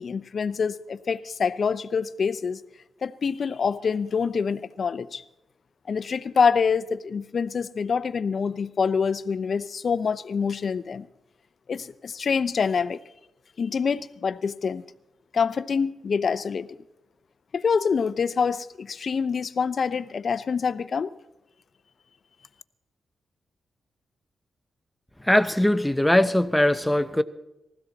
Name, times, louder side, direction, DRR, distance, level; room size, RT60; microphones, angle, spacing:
voice 1, 0.0-2.6 3.0-5.2 5.9-11.1 11.7-13.0 13.6-14.8 15.3-16.7 17.5-21.1, left 6 dB, 55° left, 0.6 m, -26 dB
voice 2, 25.2-27.2, left 1 dB, 5° left, 0.7 m, -21 dB
20.5 x 16.0 x 4.1 m
cardioid pair, 85°, 0 cm